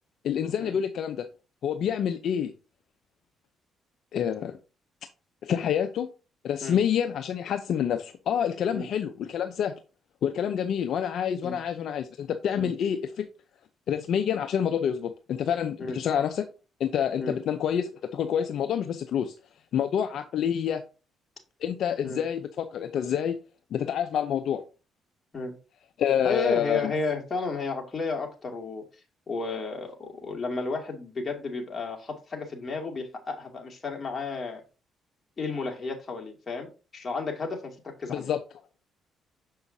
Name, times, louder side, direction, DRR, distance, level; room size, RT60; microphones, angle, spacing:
voice 1, 0.2-1.3 1.6-2.5 4.1-4.6 5.4-6.1 6.4-9.7 10.2-13.3 13.9-16.5 16.8-19.3 19.7-20.8 21.6-23.4 23.7-24.6 26.0-26.9 38.1-38.4, left 8 dB, 70° left, 0.6 m, -27 dB
voice 2, 26.2-28.8 29.3-34.6 35.4-36.7 36.9-38.3, left 4 dB, 35° left, 2.4 m, -32 dB
7.1 x 5.6 x 2.7 m
supercardioid pair, 70°, 0 cm